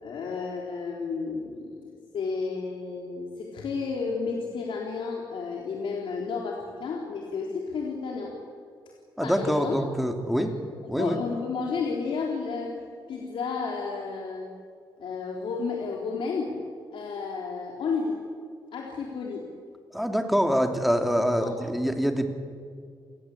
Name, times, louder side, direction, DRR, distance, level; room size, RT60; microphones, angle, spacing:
voice 1, 0.0-8.3 9.2-9.8 10.4-10.5 11.0-12.8 13.1-14.5 15.0-16.5 16.9-18.2 18.7-19.5 21.3-21.5, left 4 dB, 80° left, -1 dB, 3.7 m, -32 dB
voice 2, 9.2-10.5 10.9-11.2 19.9-22.3, equal, ahead, 5 dB, 2.8 m, -25 dB
29.5 x 20.0 x 8.6 m, 2.1 s
cardioid pair, 120°, 8 cm